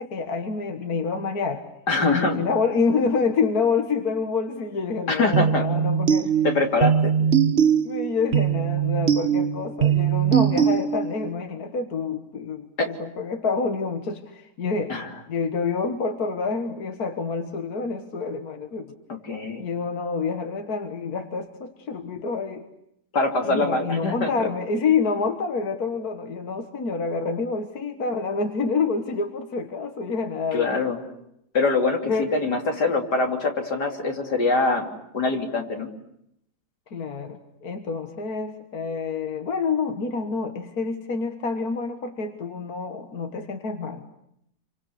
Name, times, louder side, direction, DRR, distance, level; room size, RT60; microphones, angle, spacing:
voice 1, 0.0-1.6 2.0-6.3 7.8-15.0 15.3-19.0 19.6-22.7 23.4-30.8 32.1-32.3 36.9-44.0, left 4 dB, 65° left, 6 dB, 2.1 m, -27 dB
voice 2, 1.9-2.4 5.1-5.7 6.4-7.1 12.8-12.9 14.9-15.1 19.2-19.6 23.1-24.3 30.5-31.0 31.5-35.9, left 3 dB, 85° left, 3 dB, 3.9 m, -24 dB
sound 1, 5.3-11.3, right 8 dB, 40° right, 1.5 m, -21 dB
29.0 x 25.0 x 8.2 m, 0.76 s
omnidirectional pair, 1.7 m